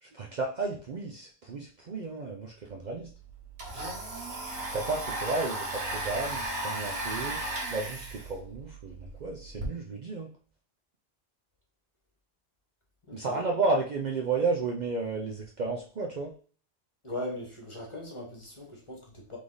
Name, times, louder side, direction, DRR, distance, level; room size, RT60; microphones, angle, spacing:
voice 1, 0.0-3.1 4.7-7.4 7.7-10.3 13.1-16.3, right 3 dB, 50° right, 0 dB, 0.7 m, -32 dB
Domestic sounds home sounds, 2.7-2.8 3.0-9.7, right 2 dB, 90° right, 1.8 m, -35 dB
voice 2, 13.1-13.4 17.0-19.4, left 1 dB, 30° left, -1 dB, 1.3 m, -39 dB
3.7 x 3.5 x 3.9 m, 0.41 s
omnidirectional pair, 1.1 m